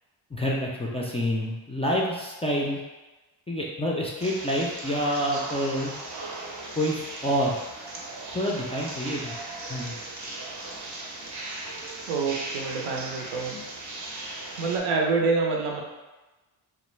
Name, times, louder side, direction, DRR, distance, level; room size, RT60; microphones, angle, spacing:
voice 1, 0.3-2.8 3.5-5.9 6.8-7.6 8.3-9.4 9.7-10.0, equal, 15° left, -4 dB, 0.3 m, -27 dB
sound 1, 4.2-14.8, right 2 dB, 35° right, 0.6 m, -38 dB
voice 2, 12.1-13.6 14.6-15.8, right 4 dB, 75° right, 0 dB, 0.6 m, -26 dB
2.2 x 2.1 x 3.1 m, 1.1 s
supercardioid pair, 55°, 50 cm